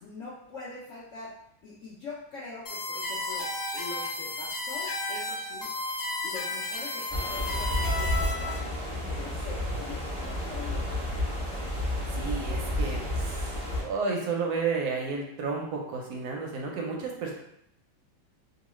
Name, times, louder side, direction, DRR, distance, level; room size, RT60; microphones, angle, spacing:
voice 1, 0.0-1.3 1.6-5.7 6.2-8.7 9.1-10.8, left 3 dB, 85° left, -8 dB, 0.6 m, -43 dB
sound 1, 2.7-8.6, left 2 dB, 50° left, 0.9 m, -33 dB
sound 2, 7.1-13.8, left 1 dB, 10° left, 0.4 m, -31 dB
voice 2, 12.1-17.3, right 4 dB, 70° right, 0 dB, 1.0 m, -32 dB
3.0 x 2.3 x 3.0 m, 0.75 s
omnidirectional pair, 2.1 m